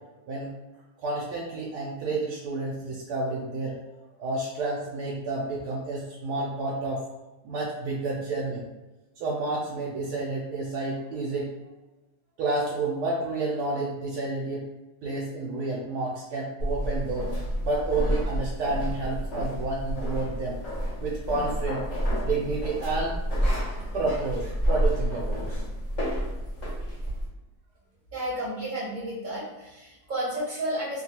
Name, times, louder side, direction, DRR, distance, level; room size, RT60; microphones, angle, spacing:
voice 1, 1.0-3.8 4.2-7.0 7.4-8.6 9.2-11.5 12.4-14.6 15.0-17.3 17.6-20.6 21.0-21.8 22.2-23.2 23.9-25.6, right 3 dB, 80° right, -4 dB, 1.1 m, -30 dB
sound 1, 16.6-27.3, equal, 40° left, 0.7 m, -29 dB
voice 2, 28.1-31.0, right 1 dB, 40° right, -6 dB, 0.7 m, -32 dB
2.9 x 2.3 x 2.8 m, 1.1 s
omnidirectional pair, 1.7 m